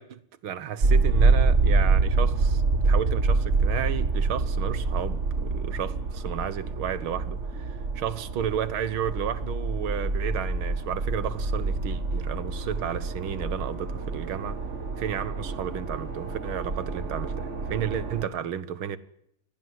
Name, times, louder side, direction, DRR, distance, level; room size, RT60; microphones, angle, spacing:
voice 1, 0.0-14.6 15.0-19.0, right 9 dB, 70° right, 2.0 m, -32 dB
sound 1, 0.8-18.2, right 3 dB, 35° right, 2.1 m, -26 dB
25.5 x 18.0 x 9.6 m
omnidirectional pair, 2.4 m